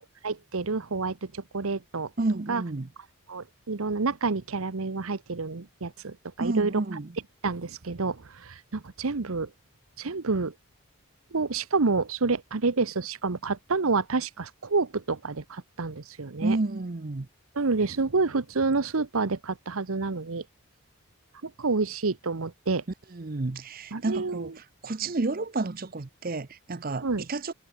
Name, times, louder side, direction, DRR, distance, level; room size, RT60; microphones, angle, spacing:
voice 1, 0.2-2.1 2.5-2.6 3.3-6.8 7.4-9.5 10.0-10.5 11.3-16.6 17.5-20.4 21.4-22.8 23.9-24.5 27.0-27.2, right 4 dB, 70° right, 0.9 m, -28 dB
voice 2, 2.2-2.9 6.4-7.1 16.4-17.3 23.1-24.5 24.8-27.5, right 2 dB, 40° right, 0.7 m, -30 dB
head